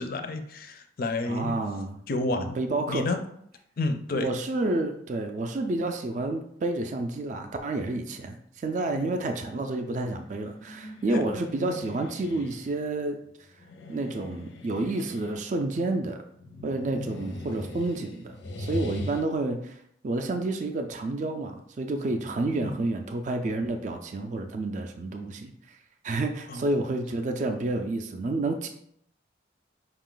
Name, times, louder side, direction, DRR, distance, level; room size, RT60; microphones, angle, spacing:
voice 1, 0.0-1.6 2.1-2.6 2.9-3.2 3.8-4.3 8.9-9.1 11.1-11.2 22.6-22.8 26.5-26.7, left 2 dB, 50° left, 7 dB, 0.4 m, -30 dB
voice 2, 1.3-2.0 2.3-3.0 4.1-8.4 8.6-13.2 13.9-16.2 16.6-19.8 20.0-25.8 26.0-28.7, right 2 dB, 40° right, 5 dB, 0.3 m, -30 dB
sound 1, 10.4-12.7 13.6-15.6 16.3-19.2, left 1 dB, 90° left, 0.7 m, -39 dB
5.1 x 2.4 x 3.7 m, 0.71 s
head